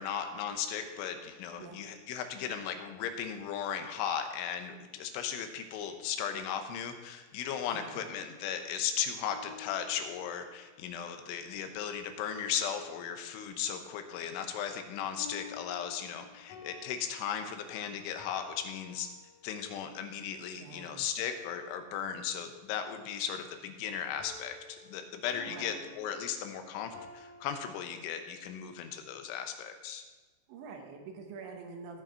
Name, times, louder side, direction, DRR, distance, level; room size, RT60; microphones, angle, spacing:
voice 1, 0.0-19.1 19.4-30.1, left 8 dB, 90° left, 7 dB, 3.4 m, -36 dB
voice 2, 7.7-8.1 20.5-21.1 25.5-25.9 30.5-32.0, right 4 dB, 80° right, 3 dB, 3.5 m, -46 dB
sound 1, 9.3-10.7 15.2-19.7 24.2-27.5, left 5 dB, 60° left, 2.6 m, -51 dB
16.0 x 6.4 x 4.4 m, 1.3 s
omnidirectional pair, 5.4 m